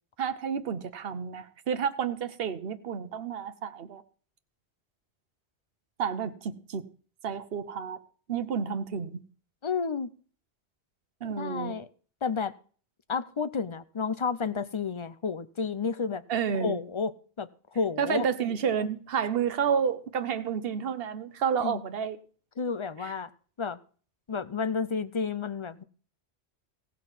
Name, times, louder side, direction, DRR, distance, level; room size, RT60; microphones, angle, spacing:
voice 1, 0.2-4.0 6.0-6.9 7.2-8.0 8.3-9.2 11.2-11.7 16.3-16.8 18.0-22.2 23.0-23.1, right 7 dB, 60° right, 1.1 m, -30 dB
voice 2, 9.6-10.1 11.2-11.9 12.2-12.5 13.1-16.2 16.5-18.3 21.6-21.8 22.6-23.3 23.6-23.8 24.3-25.8, left 5 dB, 35° left, 0.5 m, -31 dB
16.0 x 5.9 x 7.3 m
omnidirectional pair, 1.1 m